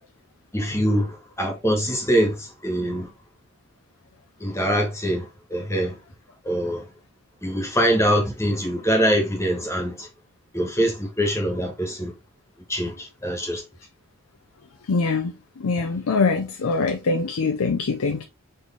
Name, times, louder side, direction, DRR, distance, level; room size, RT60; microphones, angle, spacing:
voice 1, 0.5-3.1 4.4-5.2 5.5-6.0 6.4-6.8 7.4-10.1 10.5-12.1 12.7-13.6, equal, 15° left, 1.3 m, -23 dB
voice 2, 14.9-15.3 15.6-18.2, left 4 dB, 85° left, 0.5 m, -23 dB
4.2 x 3.3 x 3.4 m
head